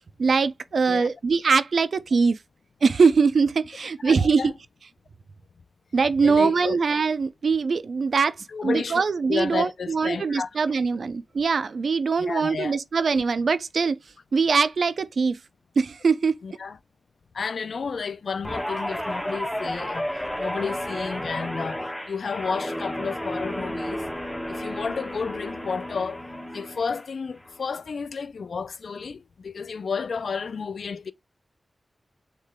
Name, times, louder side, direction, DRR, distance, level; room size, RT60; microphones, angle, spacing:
voice 1, 0.2-2.4 2.8-4.5 5.9-8.3 8.6-14.0 14.3-15.4 15.8-16.4, right 5 dB, 75° right, 0.4 m, -22 dB
voice 2, 4.0-4.5 6.2-6.8 8.5-10.8 12.2-12.8 16.4-16.8 17.3-20.1 20.4-24.0 24.5-26.2 26.5-31.1, left 5 dB, 80° left, 0.3 m, -31 dB
Guitar, 18.4-27.0 27.4-27.7, equal, 5° left, 1.1 m, -32 dB
6.5 x 3.3 x 2.2 m
wide cardioid pair, 90°, 0 cm